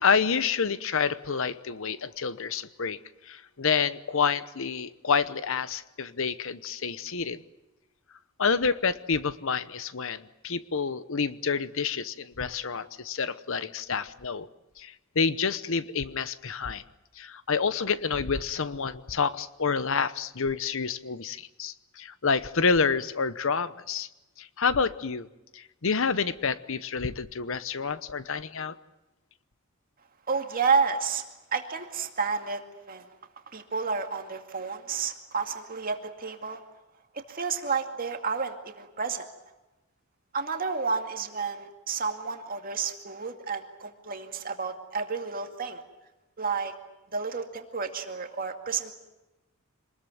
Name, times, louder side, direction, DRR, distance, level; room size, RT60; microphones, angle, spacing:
voice 1, 0.0-3.0 3.2-7.4 8.4-14.5 14.8-16.8 17.2-24.1 24.4-25.3 25.5-28.7, left 5 dB, 65° left, 14 dB, 0.9 m, -28 dB
voice 2, 30.3-31.2 31.5-32.6 32.9-33.1 33.5-36.6 37.1-39.3 40.3-45.8 46.4-46.7 47.1-48.9, right 5 dB, 40° right, 5 dB, 2.3 m, -30 dB
26.5 x 20.5 x 9.3 m, 1.0 s
head